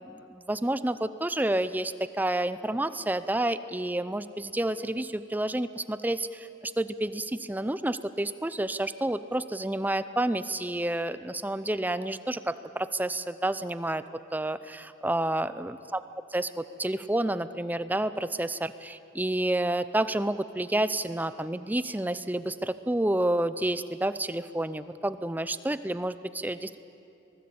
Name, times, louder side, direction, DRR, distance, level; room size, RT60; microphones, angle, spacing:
voice 1, 0.0-14.0 14.3-16.0 16.3-26.8, right 1 dB, 10° right, 13 dB, 0.5 m, -29 dB
26.0 x 19.5 x 8.6 m, 2.9 s
head